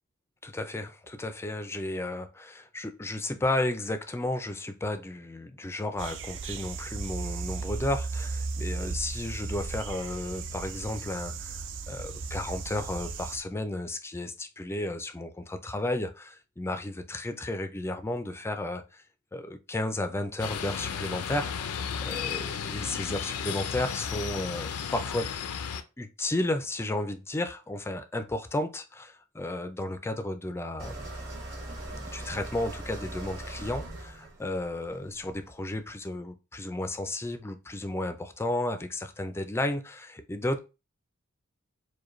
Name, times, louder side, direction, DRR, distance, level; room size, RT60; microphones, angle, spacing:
voice 1, 0.4-19.0 19.3-25.3 26.0-31.1 31.9-40.6, left 1 dB, 10° left, 0.4 m, -33 dB
sound 1, 6.0-13.4, right 4 dB, 55° right, 0.4 m, -36 dB
sound 2, 20.4-25.8, left 7 dB, 85° left, 0.5 m, -34 dB
sound 3, 30.8-35.7, right 1 dB, 70° right, 1.8 m, -40 dB
4.8 x 2.2 x 3.0 m
head